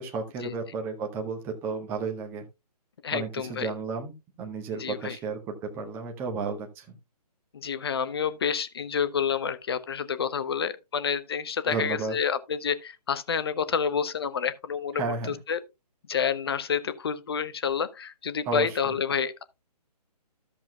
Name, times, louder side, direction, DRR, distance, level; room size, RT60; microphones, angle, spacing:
voice 1, 0.0-2.4 3.1-7.0 11.7-12.2 14.9-15.4 18.5-18.9, right 4 dB, 10° right, 0.9 m, -33 dB
voice 2, 3.0-3.7 4.7-5.2 7.5-15.6 16.1-19.4, left 7 dB, 35° left, 0.8 m, -29 dB
13.5 x 7.2 x 2.3 m
figure-of-eight pair, 140°, 21 cm